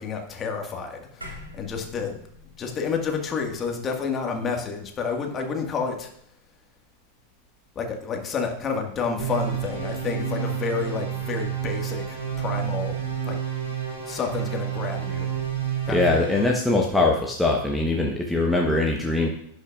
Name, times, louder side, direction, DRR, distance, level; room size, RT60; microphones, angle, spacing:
voice 1, 0.0-2.2 2.6-6.1 7.7-12.9 13.2-13.4 14.0-15.3 15.9-16.0 18.0-18.1, left 5 dB, 25° left, 2 dB, 1.8 m, -30 dB
sound 1, 1.2-5.8, left 2 dB, 80° right, 2.1 m, -46 dB
sound 2, 9.2-16.5, right 9 dB, 65° right, 4.0 m, -29 dB
voice 2, 15.9-19.3, left 2 dB, 5° left, -2 dB, 1.1 m, -22 dB
16.5 x 6.3 x 2.5 m, 0.70 s
figure-of-eight pair, 90°, 0 cm